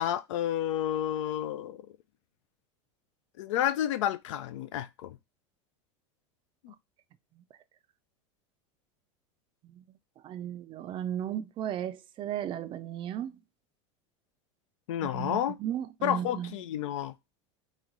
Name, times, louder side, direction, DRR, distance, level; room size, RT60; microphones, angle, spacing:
voice 1, 0.0-1.8 3.4-5.2 6.6-6.7 14.9-15.6 16.0-17.1, left 11 dB, 85° left, 0.4 m, -30 dB
voice 2, 10.2-13.4 15.0-16.5, right 10 dB, 35° right, 0.3 m, -35 dB
3.1 x 2.2 x 3.6 m
supercardioid pair, 125°, 16 cm